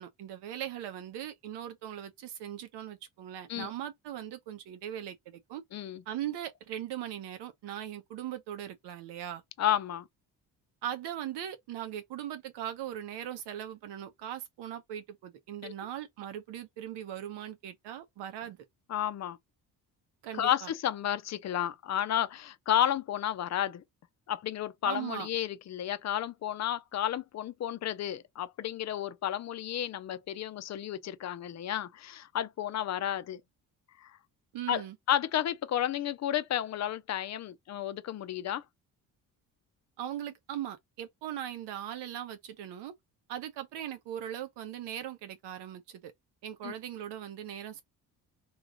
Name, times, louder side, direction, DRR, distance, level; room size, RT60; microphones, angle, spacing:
voice 1, 0.0-5.6 6.1-9.4 10.8-18.6 20.2-20.7 24.8-25.3 34.5-35.0 40.0-42.9 43.3-46.1 46.4-47.8, right 11 dB, 85° right, 1.0 m, -39 dB
voice 2, 9.6-10.1 15.6-15.7 18.9-19.4 20.3-23.8 24.3-33.4 34.0-34.1 34.7-34.8 35.1-38.6 46.6-46.7, left 11 dB, 45° left, 0.6 m, -32 dB
3.3 x 3.1 x 3.8 m
cardioid pair, 100°, 40 cm